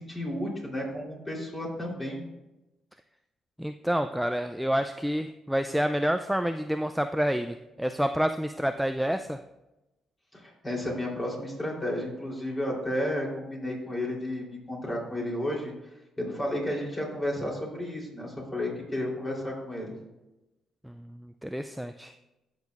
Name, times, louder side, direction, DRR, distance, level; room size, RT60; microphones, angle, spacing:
voice 1, 0.0-2.2 10.3-15.7 16.2-19.9, left 1 dB, 20° left, -2 dB, 3.3 m, -32 dB
voice 2, 3.6-9.4 20.8-22.1, equal, ahead, 7 dB, 0.3 m, -28 dB
15.0 x 6.4 x 2.4 m, 1.0 s
cardioid pair, 90°, 0 cm